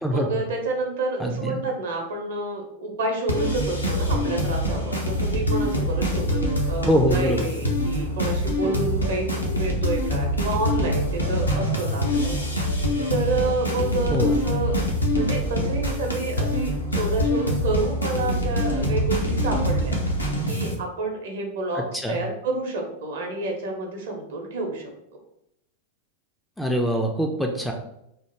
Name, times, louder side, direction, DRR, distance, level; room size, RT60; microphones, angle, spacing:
voice 1, 0.1-6.4 6.7-12.4 13.1-14.7 15.1-20.0 20.4-24.9, right 2 dB, 60° right, 2 dB, 0.7 m, -29 dB
voice 2, 1.2-1.6 6.9-7.5 14.1-14.4 21.7-22.2 26.6-27.7, equal, 5° left, 2 dB, 0.3 m, -23 dB
sound 1, 3.3-20.7, equal, 80° left, 0.6 m, -25 dB
3.0 x 2.0 x 3.3 m, 0.79 s
figure-of-eight pair, 90°, 0 cm